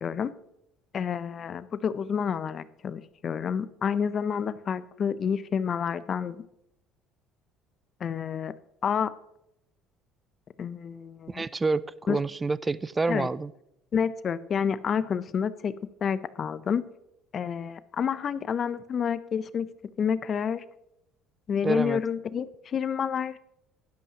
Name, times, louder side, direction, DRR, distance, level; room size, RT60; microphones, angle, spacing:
voice 1, 0.0-0.3 0.9-6.4 8.0-8.5 8.8-9.1 10.6-11.4 12.1-12.2 13.1-13.3 13.9-15.7 16.0-16.8 17.3-19.7 20.0-20.6 21.5-23.4, left 7 dB, 45° left, 15 dB, 0.5 m, -29 dB
voice 2, 11.3-13.5 21.6-22.0, right 3 dB, 20° right, 19 dB, 0.3 m, -28 dB
11.5 x 11.5 x 2.8 m, 0.82 s
supercardioid pair, 100°, 0 cm